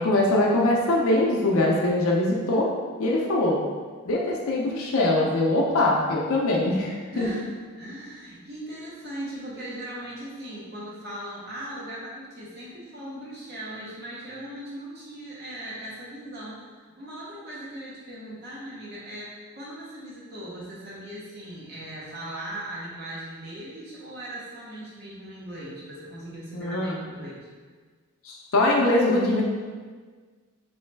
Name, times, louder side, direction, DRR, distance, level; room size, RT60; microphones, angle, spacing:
voice 1, 0.0-2.7 3.0-3.6 4.1-7.3 26.5-27.0 28.2-29.4, left 1 dB, 75° left, -2 dB, 0.5 m, -22 dB
voice 2, 7.1-7.5 7.7-27.4, right 1 dB, 45° right, -7 dB, 0.8 m, -39 dB
4.0 x 3.1 x 3.3 m, 1.5 s
head